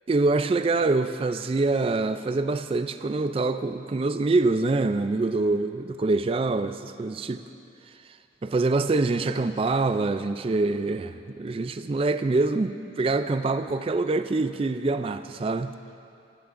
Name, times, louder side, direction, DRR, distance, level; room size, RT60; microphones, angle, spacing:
voice 1, 0.1-7.4 8.4-15.7, right 3 dB, 30° right, 10 dB, 0.3 m, -25 dB
16.5 x 14.0 x 2.5 m, 2.6 s
head